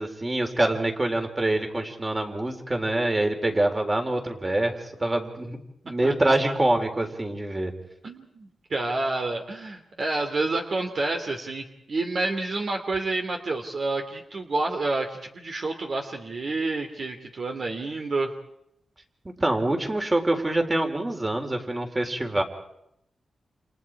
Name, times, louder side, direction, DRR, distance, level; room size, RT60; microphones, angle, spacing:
voice 1, 0.0-5.6 5.8-7.7 19.4-22.4, right 1 dB, 20° right, 4 dB, 4.0 m, -25 dB
voice 2, 6.0-6.6 8.0-18.3, right 2 dB, 50° right, 4 dB, 2.8 m, -29 dB
30.0 x 28.5 x 4.8 m, 0.77 s
wide cardioid pair, 105°, 0 cm